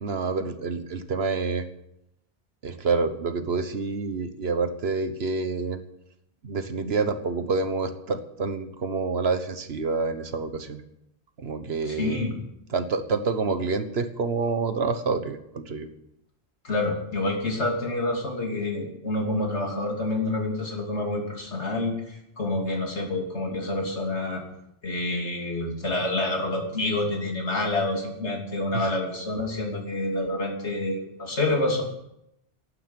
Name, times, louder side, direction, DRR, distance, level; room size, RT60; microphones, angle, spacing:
voice 1, 0.0-1.7 2.6-5.8 6.4-10.8 11.4-12.2 12.7-15.9 28.7-28.9, right 4 dB, 65° right, 10 dB, 1.5 m, -27 dB
voice 2, 11.9-12.3 16.6-24.4 24.8-31.8, left 2 dB, 90° left, 1 dB, 3.2 m, -28 dB
11.5 x 9.6 x 9.7 m, 0.82 s
omnidirectional pair, 1.1 m